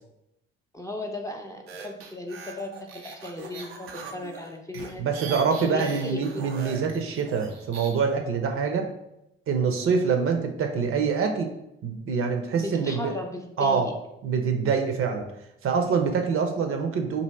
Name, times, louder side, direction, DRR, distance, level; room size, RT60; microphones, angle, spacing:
voice 1, 0.7-6.5 12.5-13.9, left 1 dB, 10° left, 1 dB, 0.6 m, -36 dB
sound 1, 1.7-7.9, right 5 dB, 90° right, 0.5 m, -40 dB
voice 2, 5.0-8.9 9.5-11.5 11.8-13.1 13.6-13.9 14.2-15.3 15.6-17.2, right 5 dB, 45° right, 5 dB, 0.6 m, -25 dB
2.8 x 2.7 x 4.2 m, 0.85 s
hypercardioid pair, 50°, 30 cm